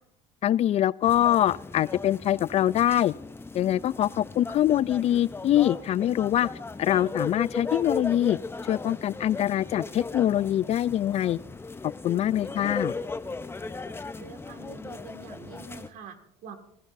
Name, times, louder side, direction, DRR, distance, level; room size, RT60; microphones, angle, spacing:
voice 1, 0.4-3.1 3.5-6.5 6.8-8.4 8.7-11.4 11.8-12.9, left 12 dB, 40° left, 0.4 m, -24 dB
sound 1, 1.0-15.9, left 3 dB, 15° left, 0.8 m, -37 dB
voice 2, 14.2-16.6, right 4 dB, 60° right, 2.2 m, -45 dB
22.0 x 14.5 x 2.7 m
hypercardioid pair, 80°, 16 cm